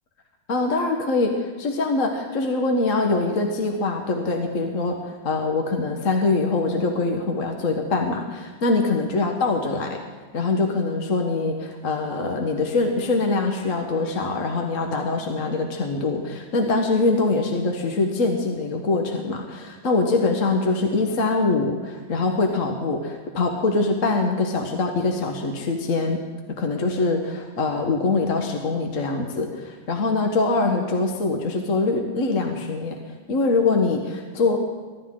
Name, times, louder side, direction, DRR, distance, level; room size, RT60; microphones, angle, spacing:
voice 1, 0.5-10.0 10.3-26.2 26.6-33.0 33.3-34.6, left 3 dB, 45° left, 3 dB, 1.5 m, -23 dB
23.5 x 12.0 x 3.8 m, 1.5 s
omnidirectional pair, 2.1 m